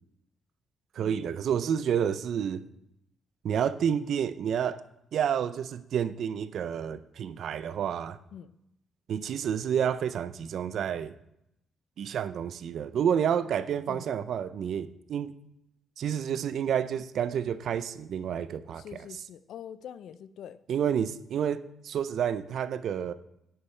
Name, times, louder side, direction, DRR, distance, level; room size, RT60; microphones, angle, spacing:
voice 1, 1.0-2.6 3.4-4.8 5.1-8.2 9.1-11.1 12.0-15.4 16.0-19.0 20.7-23.1, right 8 dB, 65° right, 14 dB, 0.5 m, -29 dB
voice 2, 18.8-20.6, left 9 dB, 75° left, 15 dB, 0.4 m, -44 dB
10.5 x 8.2 x 3.3 m, 0.81 s
cardioid pair, 90°, 0 cm